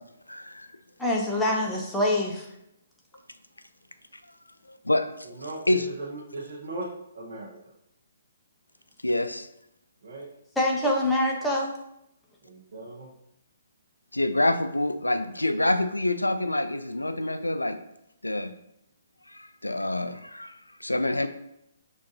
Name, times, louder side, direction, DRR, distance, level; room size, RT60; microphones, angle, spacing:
voice 1, 0.3-0.7 4.7-5.1 5.7-5.9 9.0-9.5 14.1-17.8 18.2-18.5 19.3-20.6 20.8-21.3, left 1 dB, 90° left, 10 dB, 0.3 m, -26 dB
voice 2, 1.0-2.5 10.6-11.7, left 1 dB, 5° left, -2 dB, 0.7 m, -25 dB
voice 3, 5.2-6.9 7.1-7.7 10.0-10.3 12.4-13.1, right 2 dB, 55° right, -3 dB, 0.7 m, -38 dB
5.8 x 2.6 x 2.6 m, 0.81 s
figure-of-eight pair, 130°, 0 cm